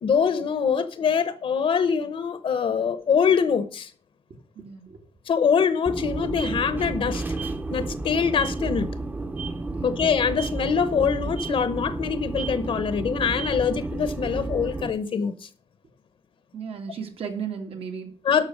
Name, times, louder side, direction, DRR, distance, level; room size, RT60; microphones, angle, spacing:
voice 1, 0.0-3.9 5.3-7.2 7.7-8.9 9.8-15.5 18.2-18.5, left 6 dB, 70° left, 0.9 m, -24 dB
voice 2, 4.6-5.0 9.7-10.0 16.5-18.1, right 6 dB, 75° right, 2.3 m, -35 dB
sound 1, 5.9-14.9, right 2 dB, 20° right, 0.7 m, -31 dB
12.0 x 5.9 x 6.5 m
wide cardioid pair, 175°, 10 cm